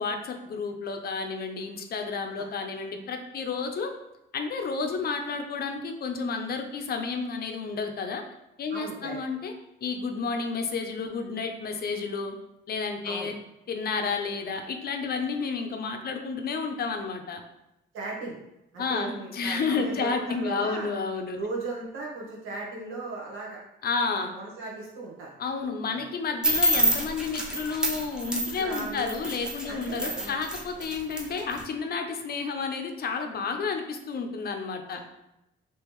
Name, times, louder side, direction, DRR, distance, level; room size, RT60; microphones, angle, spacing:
voice 1, 0.0-3.9 4.3-8.2 8.6-9.5 9.8-12.4 12.7-13.4 13.7-17.4 18.8-21.4 23.8-24.3 25.4-35.0, left 4 dB, 50° left, 5 dB, 0.5 m, -31 dB
voice 2, 8.7-9.2 13.0-13.3 17.9-18.4 18.7-20.9 21.3-23.6 24.1-25.3 25.9-26.0 26.7-26.9 28.6-29.3 29.7-30.4 34.9-35.0, right 3 dB, 85° right, -3 dB, 1.1 m, -37 dB
sound 1, 26.4-31.6, right 1 dB, 5° right, 0.7 m, -27 dB
3.5 x 3.0 x 3.0 m, 0.88 s
cardioid pair, 90°, 20 cm